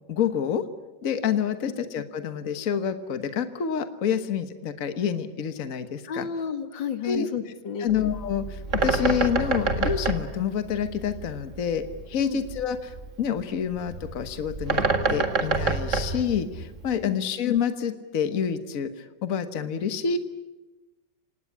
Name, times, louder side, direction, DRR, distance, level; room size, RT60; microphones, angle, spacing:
voice 1, 0.1-0.7 1.0-6.3 7.0-7.3 7.8-14.8 15.1-20.2, left 7 dB, 50° left, 10 dB, 1.6 m, -28 dB
voice 2, 6.1-7.9 12.2-12.4 17.0-17.2, left 7 dB, 85° left, 9 dB, 2.3 m, -32 dB
Bird, 7.9-17.0, right 4 dB, 40° right, 2.2 m, -28 dB
26.0 x 19.0 x 9.9 m, 1.1 s
omnidirectional pair, 2.0 m